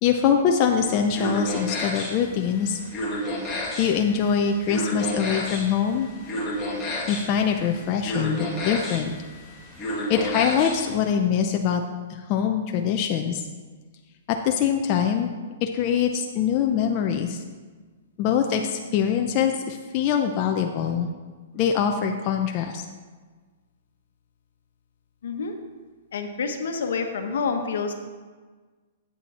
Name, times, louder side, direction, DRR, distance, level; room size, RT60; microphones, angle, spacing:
voice 1, 0.0-2.8 3.8-6.1 7.1-9.1 10.1-11.8 12.3-13.4 14.4-15.3 15.6-17.4 18.2-21.1 21.5-22.8, left 7 dB, 35° left, 3 dB, 0.6 m, -23 dB
sound 1, 0.7-11.0, left 1 dB, 15° left, 2.2 m, -32 dB
voice 2, 25.2-25.5 26.1-27.9, left 5 dB, 75° left, 5 dB, 1.2 m, -28 dB
8.7 x 7.0 x 4.3 m, 1.4 s
hypercardioid pair, 150°, 0 cm